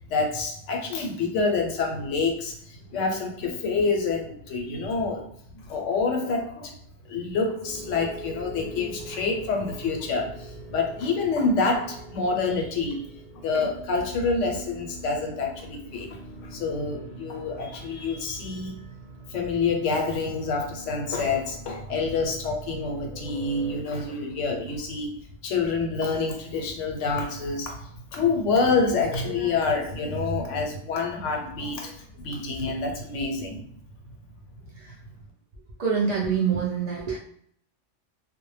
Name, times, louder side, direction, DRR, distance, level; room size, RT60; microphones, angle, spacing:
voice 1, 0.1-5.3 5.5-6.7 7.1-13.1 13.4-18.9 19.3-25.1 25.4-33.6, left 4 dB, 90° left, 1 dB, 0.9 m, -27 dB
sound 1, 7.6-23.8, right 1 dB, 50° left, 0.5 m, -43 dB
voice 2, 35.8-37.2, right 6 dB, 75° right, -4 dB, 0.3 m, -25 dB
2.1 x 2.0 x 3.1 m, 0.64 s
omnidirectional pair, 1.2 m